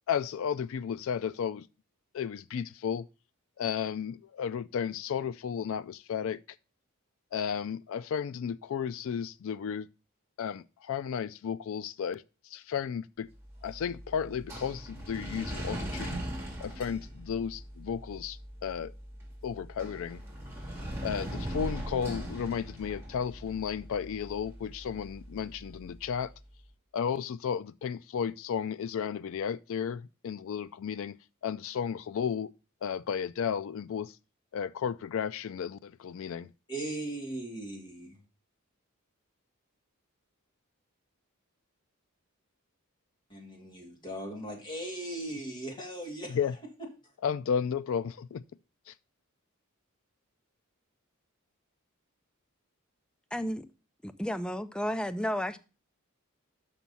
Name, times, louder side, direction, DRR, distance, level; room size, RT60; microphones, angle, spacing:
voice 1, 0.1-1.7 2.1-3.1 3.6-6.4 7.3-9.9 10.4-13.3 13.6-16.2 16.6-18.9 19.4-20.2 21.0-26.3 26.9-31.2 31.4-32.5 32.8-34.2 34.5-36.5 46.3-46.5 47.2-48.4 48.9-49.0, left 7 dB, 65° left, 0.3 m, -33 dB
sound 1, 13.4-26.5, equal, 10° right, 2.5 m, -41 dB
voice 2, 36.7-38.2 43.3-46.4, right 1 dB, 20° left, 2.4 m, -38 dB
voice 3, 54.0-55.6, equal, 5° left, 0.4 m, -32 dB
6.1 x 5.9 x 5.4 m
head